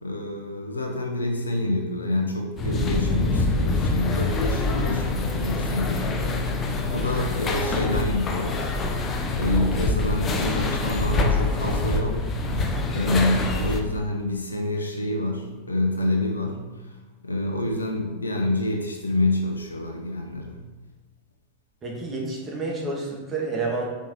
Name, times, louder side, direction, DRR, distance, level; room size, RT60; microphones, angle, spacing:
voice 1, 0.0-12.3 12.9-16.9 17.2-20.6, left 1 dB, 80° left, 2 dB, 1.0 m, -27 dB
sound 1, 2.6-13.8, left 2 dB, 25° left, 0.8 m, -25 dB
voice 2, 21.8-23.9, right 3 dB, 25° right, -2 dB, 2.0 m, -29 dB
5.5 x 5.2 x 5.3 m, 1.2 s
figure-of-eight pair, 90°, 0 cm